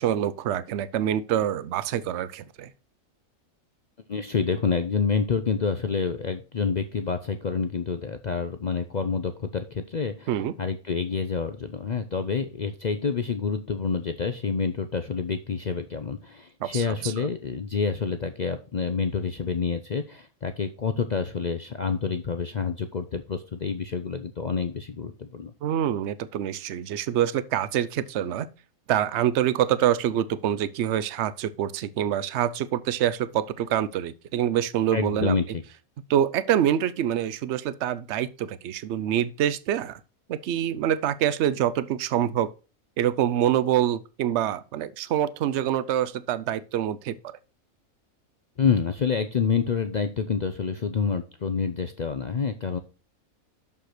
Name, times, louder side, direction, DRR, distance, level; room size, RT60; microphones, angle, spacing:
voice 1, 0.0-2.7 10.3-10.5 16.6-17.1 25.6-28.5 28.9-35.4 36.1-40.0 40.3-42.5 43.0-47.2, right 10 dB, 65° right, 0.8 m, -26 dB
voice 2, 4.1-25.5 34.9-35.6 48.6-52.8, left 5 dB, 55° left, 0.4 m, -28 dB
6.5 x 5.6 x 5.9 m
omnidirectional pair, 1.5 m